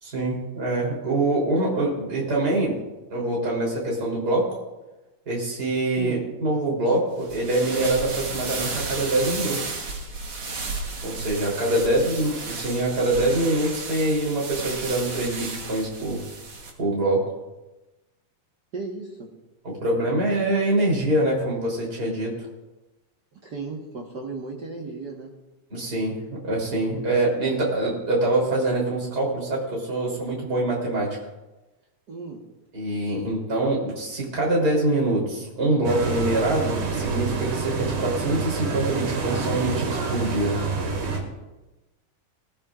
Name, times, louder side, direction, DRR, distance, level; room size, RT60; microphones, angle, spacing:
voice 1, 0.0-2.8 3.1-4.6 5.3-9.7 11.0-16.2 16.8-17.2 19.6-22.4 25.7-31.2 32.7-40.6, right 2 dB, 25° right, -3 dB, 3.8 m, -24 dB
sound 1, 7.2-16.7, right 3 dB, 50° right, 2.1 m, -33 dB
voice 2, 18.7-19.3 23.4-25.3 32.1-32.4, right 3 dB, 70° right, -2 dB, 1.0 m, -35 dB
sound 2, 35.8-41.2, right 4 dB, 85° right, 4.0 m, -27 dB
20.5 x 14.0 x 2.5 m, 1.1 s
omnidirectional pair, 4.1 m